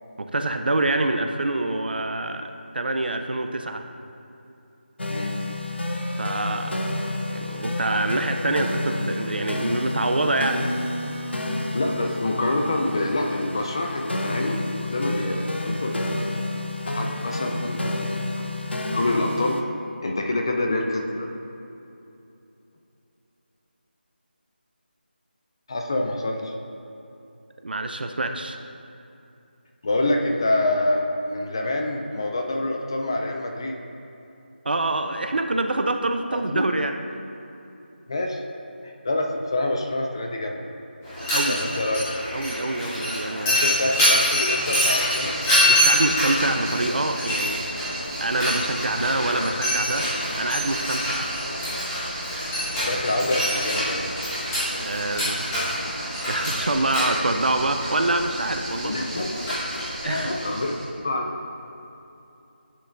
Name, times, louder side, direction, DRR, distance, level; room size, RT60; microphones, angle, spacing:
voice 1, 0.2-3.8 6.2-6.7 7.3-10.6 27.6-28.6 34.6-36.9 41.3-41.6 42.3-43.7 45.7-47.7 48.2-51.3 54.7-58.9 60.0-60.3, right 2 dB, 60° right, 6 dB, 0.5 m, -26 dB
sound 1, 5.0-19.6, left 2 dB, 85° left, 0.7 m, -30 dB
voice 2, 11.7-16.3 16.9-17.8 18.9-19.6 20.0-21.3 25.7-26.5 29.8-33.8 36.3-36.6 38.1-38.4 38.8-40.6 41.4-42.0 43.4-45.3 52.8-54.1 58.8-59.3 60.0-60.7 61.0-61.3, left 2 dB, 25° left, 2 dB, 0.4 m, -26 dB
Mechanisms, 41.0-60.6, equal, 10° left, 1.2 m, -26 dB
sound 2, 44.6-60.9, right 1 dB, 25° right, 1.1 m, -36 dB
9.9 x 5.7 x 2.5 m, 2.8 s
figure-of-eight pair, 170°, 6 cm